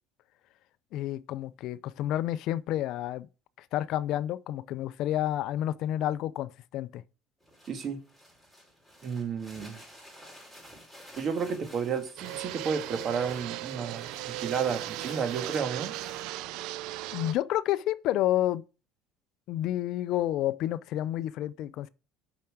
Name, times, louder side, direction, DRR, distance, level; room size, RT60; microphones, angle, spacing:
voice 1, 0.9-3.3 3.7-7.0 17.1-18.6 19.5-21.9, left 13 dB, 60° left, 0.4 m, -30 dB
sound 1, 7.4-16.3, equal, 10° right, 4.9 m, -51 dB
voice 2, 7.7-8.0 9.0-9.8 11.2-15.9, right 6 dB, 40° right, 1.7 m, -32 dB
Fixed-wing aircraft airplane, 12.2-17.3, right 15 dB, 70° right, 0.5 m, -37 dB
7.0 x 5.7 x 6.4 m
cardioid pair, 120°, 0 cm